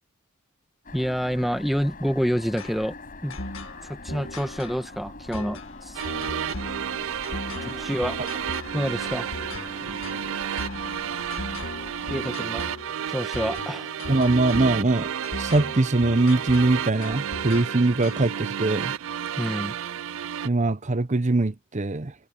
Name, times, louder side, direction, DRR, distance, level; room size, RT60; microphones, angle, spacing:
sound 1, 0.8-12.2, left 3 dB, 40° left, 5.4 m, -43 dB
voice 1, 0.9-2.9 3.2-3.4 3.8-6.0 7.6-8.2 8.7-9.4 9.8-10.0 12.1-12.7 13.1-13.9 19.4-19.7, equal, ahead, 1.3 m, -28 dB
sound 2, 2.6-18.4, left 2 dB, 65° left, 2.3 m, -38 dB
sound 3, 5.9-20.5, right 9 dB, 65° right, 0.4 m, -32 dB
voice 2, 14.1-18.9 20.4-22.1, right 2 dB, 35° right, 0.8 m, -22 dB
head